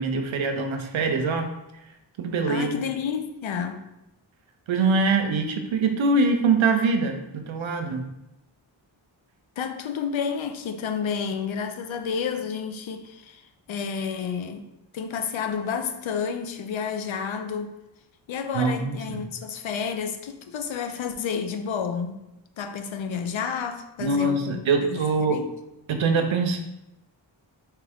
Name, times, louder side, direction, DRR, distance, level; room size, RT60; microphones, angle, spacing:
voice 1, 0.0-1.5 2.2-2.8 4.7-8.0 18.5-19.2 24.0-25.4 25.9-26.6, right 3 dB, 80° right, 0.6 m, -23 dB
voice 2, 2.5-3.8 9.6-14.7 14.9-17.7 18.3-22.2 22.6-25.0 25.3-25.5, left 6 dB, 75° left, 0.5 m, -30 dB
3.5 x 3.0 x 3.5 m
wide cardioid pair, 90°, 47 cm